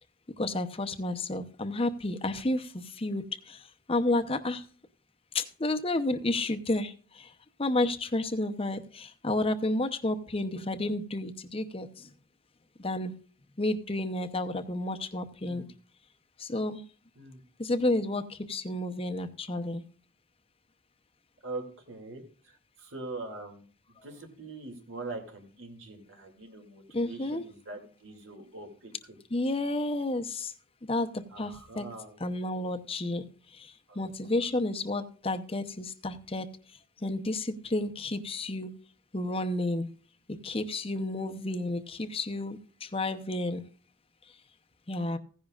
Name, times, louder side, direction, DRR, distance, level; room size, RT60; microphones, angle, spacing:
voice 1, 0.4-4.6 5.3-7.3 7.6-12.1 12.8-13.1 13.6-15.6 16.4-16.8 17.6-19.8 26.9-27.4 29.3-30.5 30.8-31.9 32.2-33.2 33.5-36.5 37.0-38.7 39.1-39.9 40.4-43.6 44.9-45.2, left 2 dB, 25° left, 8 dB, 0.7 m, -31 dB
voice 2, 21.4-23.6 24.0-29.2 31.3-32.2 33.9-34.3, right 2 dB, 65° right, 3 dB, 2.5 m, -43 dB
16.0 x 10.5 x 2.4 m, 0.42 s
head